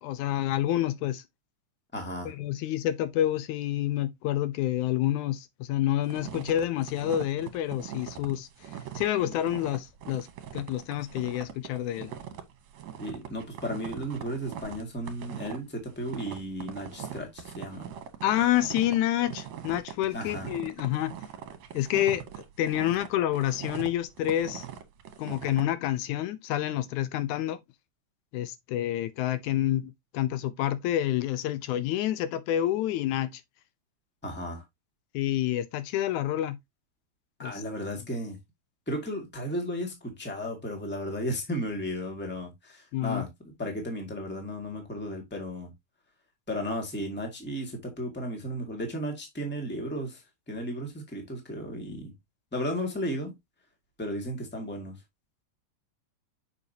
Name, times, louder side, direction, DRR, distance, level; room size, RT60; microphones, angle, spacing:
voice 1, 0.0-1.2 2.3-10.3 10.5-12.1 18.2-21.1 21.7-22.2 22.6-24.7 25.2-27.6 28.3-33.4 35.1-36.6 37.4-37.6 42.9-43.3, left 12 dB, 80° left, 2.1 m, -28 dB
voice 2, 1.9-2.3 13.0-17.9 20.1-20.5 34.2-34.6 37.4-38.4 38.9-45.7 46.5-50.2 50.5-52.1 52.5-53.3 54.0-55.0, equal, 5° left, 1.4 m, -34 dB
sound 1, 6.0-25.6, right 9 dB, 70° right, 2.2 m, -41 dB
6.9 x 5.8 x 2.7 m
omnidirectional pair, 3.4 m